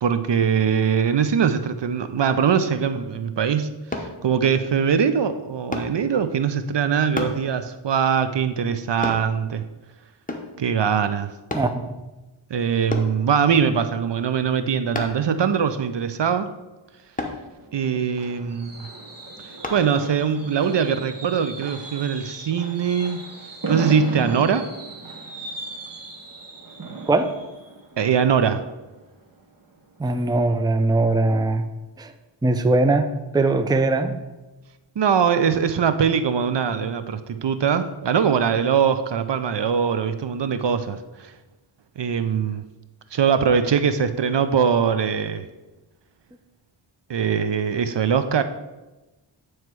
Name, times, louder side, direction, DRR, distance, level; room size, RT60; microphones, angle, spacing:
voice 1, 0.0-9.6 10.6-11.3 12.5-16.5 17.7-18.8 19.7-23.2 23.7-24.7 28.0-28.7 35.0-41.3 42.0-42.6 43.1-45.5 47.1-48.4, right 7 dB, 60° right, 11 dB, 0.5 m, -22 dB
sound 1, 3.9-4.1 5.7-6.0 7.2-7.4 9.0-9.3 10.3-10.6 11.5-11.7 12.9-13.2 14.9-15.3 17.2-17.4 19.6-19.8 20.4-20.5, left 2 dB, 15° left, 0.9 m, -29 dB
voice 2, 11.5-12.0 27.1-27.3 30.0-31.7 32.0-32.1 32.4-33.1 33.3-34.1, right 2 dB, 10° right, 9 dB, 0.4 m, -20 dB
Fireworks, 17.5-29.2 29.6-29.9 30.1-30.2, right 3 dB, 40° right, 1.2 m, -36 dB
9.1 x 3.1 x 4.5 m, 1.1 s
wide cardioid pair, 40°, 49 cm